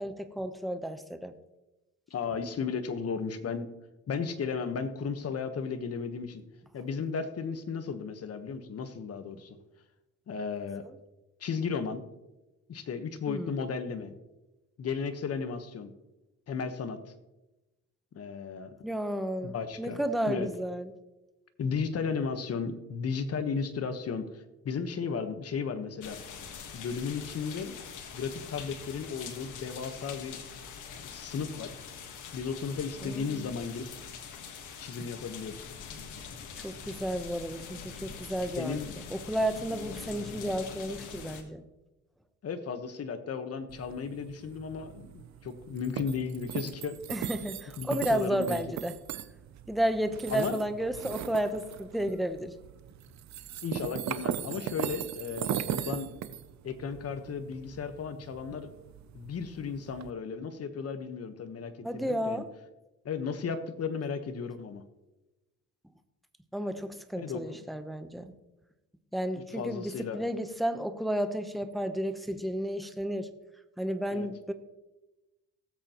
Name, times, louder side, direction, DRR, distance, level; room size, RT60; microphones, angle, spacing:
voice 1, 0.0-1.3 13.3-13.5 18.8-20.9 33.0-33.5 36.6-38.8 39.1-41.6 47.1-48.9 49.7-52.5 61.8-62.5 66.5-68.3 69.1-73.3 73.8-74.5, right 1 dB, ahead, 8 dB, 0.9 m, -32 dB
voice 2, 2.1-3.7 4.1-6.4 6.7-9.6 10.3-10.8 11.4-12.0 12.7-14.2 14.8-15.9 16.5-17.1 18.1-18.7 19.4-20.0 20.3-20.5 21.6-26.2 26.7-27.7 28.1-30.4 31.0-31.7 32.3-33.9 34.8-35.7 38.6-38.9 42.4-47.0 47.8-48.6 50.3-50.6 53.6-56.1 56.6-58.7 59.1-62.4 63.0-64.8 67.1-67.6 69.5-70.2 74.1-74.3, left 5 dB, 50° left, 9 dB, 1.3 m, -35 dB
sound 1, 26.0-41.4, left 6 dB, 80° left, 1.6 m, -44 dB
sound 2, 43.7-60.1, right 10 dB, 65° right, 0.7 m, -39 dB
18.5 x 8.0 x 3.0 m, 1.0 s
cardioid pair, 90°, 30 cm